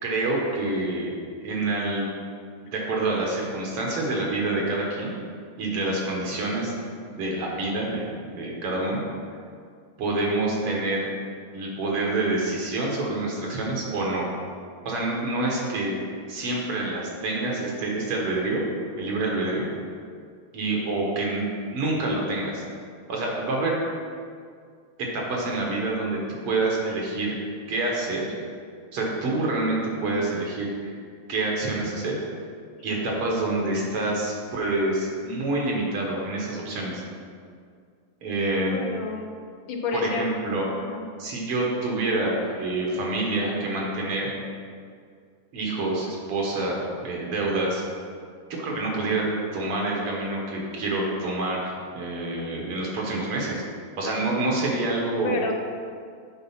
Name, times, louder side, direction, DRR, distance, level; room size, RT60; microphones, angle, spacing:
voice 1, 0.0-1.1 1.4-2.1 2.6-5.1 5.6-6.7 7.2-8.0 8.3-9.0 10.0-11.1 11.5-14.3 14.9-15.9 16.3-18.6 19.0-19.7 20.5-21.5 21.7-22.6 23.1-23.8 25.0-26.2 26.4-27.3 27.7-28.3 28.9-30.9 31.3-32.2 32.8-37.0 38.2-38.8 39.9-40.7 41.2-44.3 45.5-47.8 48.6-49.2 49.5-53.6 54.0-55.4, right 2 dB, 85° right, -2 dB, 2.5 m, -27 dB
voice 2, 38.7-39.2 39.7-41.0 55.2-55.5, left 3 dB, 70° left, 2 dB, 1.5 m, -30 dB
8.9 x 4.2 x 5.7 m, 2.2 s
omnidirectional pair, 2.4 m